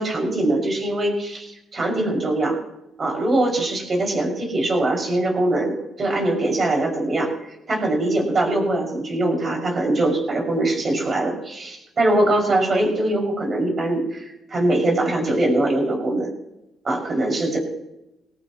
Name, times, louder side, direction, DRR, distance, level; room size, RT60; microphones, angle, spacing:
voice 1, 0.0-2.6 3.0-7.3 7.7-16.3 16.8-17.6, right 1 dB, 40° right, 1 dB, 6.5 m, -22 dB
22.0 x 17.5 x 3.2 m, 0.91 s
cardioid pair, 90°, 0 cm